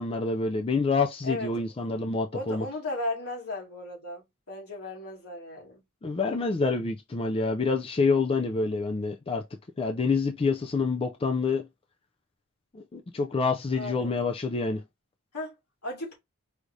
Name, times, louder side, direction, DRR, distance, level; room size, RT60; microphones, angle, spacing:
voice 1, 0.0-2.6 6.0-9.4 9.8-11.7 12.7-14.8, left 4 dB, 25° left, 0.4 m, -27 dB
voice 2, 2.3-5.8 13.8-14.1 15.3-15.5 15.8-16.2, left 2 dB, 80° left, 2.5 m, -35 dB
4.8 x 3.2 x 2.7 m
head